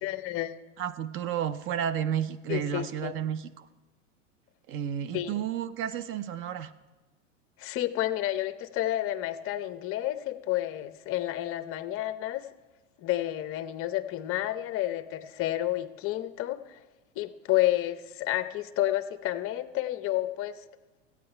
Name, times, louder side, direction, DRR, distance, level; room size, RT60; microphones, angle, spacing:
voice 1, 0.0-0.6 2.5-3.1 5.1-5.3 7.6-12.4 13.0-16.8 17.2-20.6, left 14 dB, 35° left, 12 dB, 0.7 m, -30 dB
voice 2, 0.8-3.7 4.7-6.7, right 9 dB, 35° right, 13 dB, 0.6 m, -32 dB
14.5 x 8.8 x 4.4 m, 1.2 s
hypercardioid pair, 105°, 38 cm